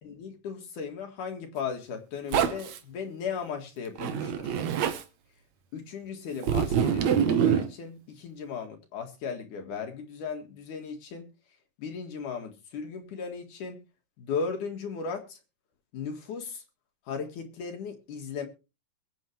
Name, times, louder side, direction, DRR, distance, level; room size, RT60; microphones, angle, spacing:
voice 1, 0.0-4.7 5.7-11.3 11.8-13.8 14.2-15.4 15.9-16.6 17.1-18.5, left 6 dB, 70° left, 3.2 m, -36 dB
Zipper (clothing), 2.3-2.8 4.0-5.0 6.4-7.7, right 8 dB, 65° right, 2.3 m, -25 dB
22.0 x 8.5 x 3.3 m
omnidirectional pair, 3.8 m